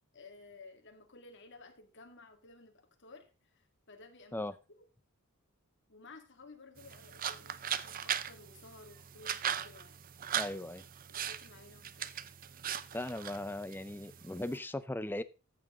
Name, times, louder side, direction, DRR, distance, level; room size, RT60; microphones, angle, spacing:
voice 1, 0.1-4.5 4.8-4.9 5.9-10.0 11.1-12.1, left 3 dB, 55° left, 4 dB, 2.3 m, -55 dB
sound 1, 6.8-14.6, right 9 dB, 40° right, 0.6 m, -39 dB
voice 2, 10.3-10.8 12.9-15.2, left 1 dB, 10° left, 13 dB, 0.5 m, -38 dB
14.0 x 7.4 x 3.8 m, 0.31 s
head